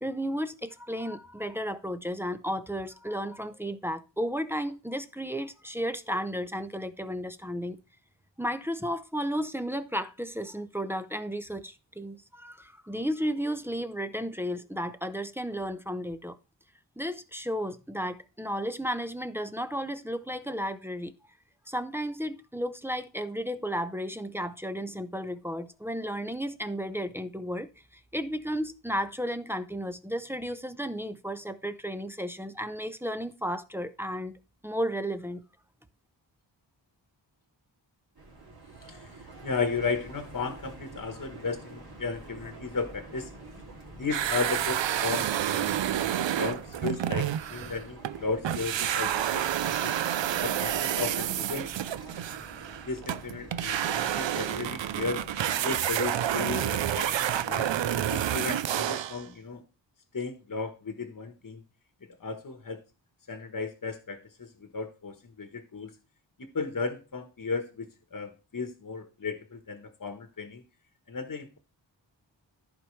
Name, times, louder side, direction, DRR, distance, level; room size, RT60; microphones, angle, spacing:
voice 1, 0.0-7.8 8.4-16.4 17.0-21.1 21.7-27.7 28.1-34.3 34.6-35.4, equal, 5° right, 0.6 m, -33 dB
sound 1, 38.1-58.1, right 3 dB, 55° right, 2.6 m, -47 dB
voice 2, 39.4-43.3 43.9-45.8 46.1-49.9 50.4-51.7 52.9-55.2 55.6-57.7 58.1-59.6 60.1-61.6 62.1-62.8 63.3-65.9 66.4-70.6 71.1-71.6, left 4 dB, 45° left, 1.2 m, -35 dB
sound 2, 44.1-48.2 48.4-59.2, right 11 dB, 75° right, 0.5 m, -29 dB
14.0 x 4.8 x 3.2 m
wide cardioid pair, 85°, 45 cm